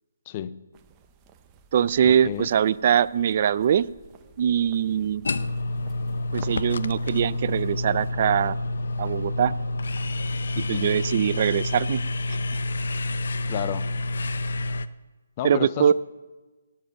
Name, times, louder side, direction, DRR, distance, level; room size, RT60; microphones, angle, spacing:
voice 1, 0.3-0.6 2.0-2.5 10.6-10.9 13.5-13.9 15.4-15.9, left 10 dB, 25° left, 0.5 m, -32 dB
sound 1, 0.7-8.1, right 7 dB, 20° right, 0.7 m, -52 dB
voice 2, 1.7-3.9 4.4-5.2 6.3-8.6 9.0-9.5 10.7-12.0 12.3-12.4 15.4-15.9, right 9 dB, 40° right, 0.4 m, -22 dB
sound 2, 5.2-14.9, left 2 dB, 70° left, 0.7 m, -28 dB
19.0 x 7.4 x 7.0 m
hypercardioid pair, 165°, 0 cm